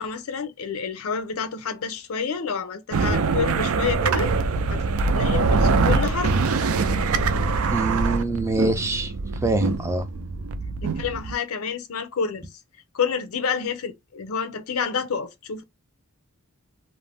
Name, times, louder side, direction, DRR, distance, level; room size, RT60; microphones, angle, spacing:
voice 1, 0.0-4.3 4.7-4.8 5.1-6.4 10.8-12.5 12.9-15.6, left 6 dB, 75° left, 0.5 m, -28 dB
sound 1, 2.9-11.3, right 4 dB, 80° right, 0.4 m, -23 dB
voice 2, 7.7-9.1 9.4-10.0, right 2 dB, 15° right, 0.3 m, -24 dB
2.5 x 2.0 x 3.3 m
head